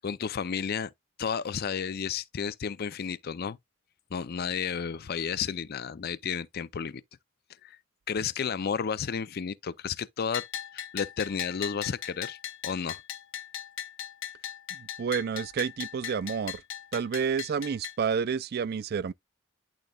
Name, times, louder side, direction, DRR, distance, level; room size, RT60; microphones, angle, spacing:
voice 1, 0.0-0.9 1.2-3.6 4.1-7.0 7.6-7.8 8.1-10.4 10.7-12.4 12.6-13.0, left 6 dB, 50° left, 0.4 m, -32 dB
Bell, 10.3-18.0, left 9 dB, 85° left, 0.8 m, -39 dB
voice 2, 14.7-16.6 16.9-19.1, right 6 dB, 50° right, 0.4 m, -30 dB
10.5 x 3.8 x 2.3 m
head